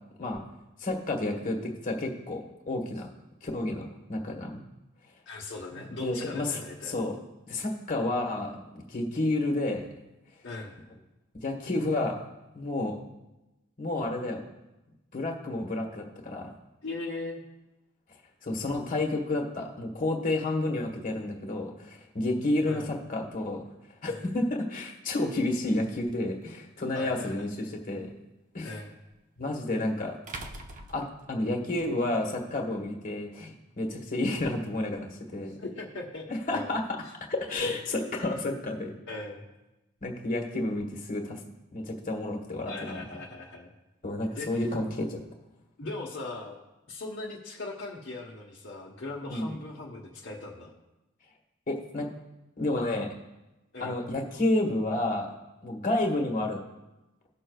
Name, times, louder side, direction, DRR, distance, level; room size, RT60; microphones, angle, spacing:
voice 1, 0.8-3.1 3.4-4.6 5.7-6.6 6.9-7.2 7.5-9.9 11.4-12.1 12.5-13.0 13.8-14.4 15.1-16.5 18.4-23.6 24.0-28.1 28.5-28.7 29.4-30.2 30.9-35.5 36.3-36.8 37.3-39.0 40.0-41.4 41.7-43.0 44.0-45.2 49.3-49.5 51.7-52.1 52.6-53.1 53.8-55.3 55.6-56.6, left 2 dB, 40° left, 1 dB, 1.4 m, -30 dB
voice 2, 5.3-7.0 10.4-10.8 16.8-17.4 22.7-22.9 24.0-24.3 26.9-27.5 28.6-28.9 35.6-36.2 36.5-36.7 39.1-39.5 42.6-43.7 44.3-44.6 45.8-46.6 46.9-50.7 53.7-54.0, left 2 dB, 55° left, -4 dB, 1.1 m, -39 dB
sound 1, 26.4-26.5 29.1-29.2 30.3-31.9, right 2 dB, 40° right, 0.7 m, -42 dB
19.5 x 6.5 x 2.3 m, 1.0 s
head